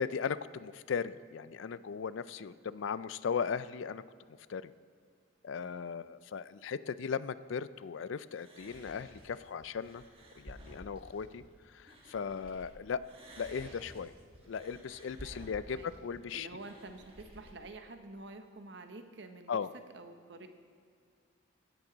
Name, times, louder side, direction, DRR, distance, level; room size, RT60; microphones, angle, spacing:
voice 1, 0.0-4.0 4.5-4.7 5.4-10.0 10.4-13.0 13.4-14.1 14.5-16.5 19.5-19.7, left 6 dB, 75° left, 16 dB, 0.4 m, -37 dB
voice 2, 5.6-5.9 15.2-15.4 15.7-15.9 16.3-17.0 17.3-20.5, right 2 dB, 60° right, 7 dB, 0.9 m, -49 dB
sound 1, 8.3-12.7 13.0-17.5, right 1 dB, 30° right, 1.5 m, -53 dB
16.0 x 10.5 x 3.9 m, 2.2 s
head